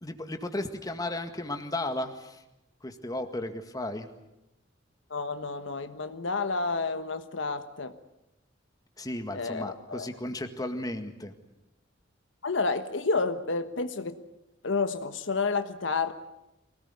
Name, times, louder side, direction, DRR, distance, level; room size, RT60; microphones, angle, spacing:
voice 1, 0.0-2.4 2.8-4.1 9.0-11.3, left 1 dB, 20° left, 6 dB, 1.9 m, -34 dB
voice 2, 5.1-7.9 9.3-10.1 12.4-14.2 14.6-16.1, left 4 dB, 75° left, 9 dB, 1.3 m, -30 dB
24.0 x 18.5 x 9.6 m, 0.92 s
head